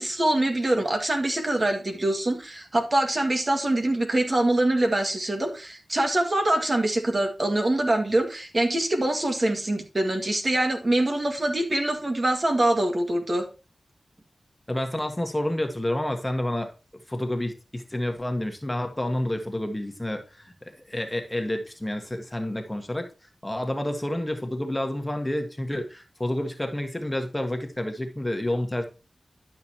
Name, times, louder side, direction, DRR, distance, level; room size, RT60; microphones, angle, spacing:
voice 1, 0.0-13.4, right 1 dB, 45° right, 4 dB, 2.0 m, -24 dB
voice 2, 14.7-16.7 17.1-23.1 23.4-28.9, left 1 dB, 20° left, 5 dB, 1.5 m, -29 dB
11.5 x 6.0 x 2.9 m, 0.32 s
cardioid pair, 45°, 0 cm